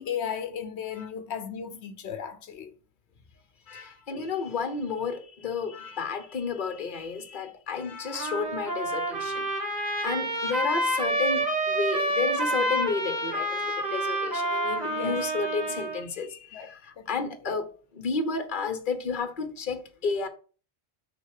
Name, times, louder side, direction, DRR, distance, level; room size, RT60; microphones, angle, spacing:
voice 1, 0.0-2.7 14.9-15.2 16.5-16.7 17.0-17.3, left 8 dB, 90° left, 1.1 m, -35 dB
voice 2, 3.7-9.5 9.8-20.3, left 5 dB, 50° left, 1.2 m, -32 dB
Trumpet, 8.1-16.0, right 1 dB, 40° right, 1.8 m, -28 dB
6.5 x 4.2 x 6.5 m
omnidirectional pair, 1.1 m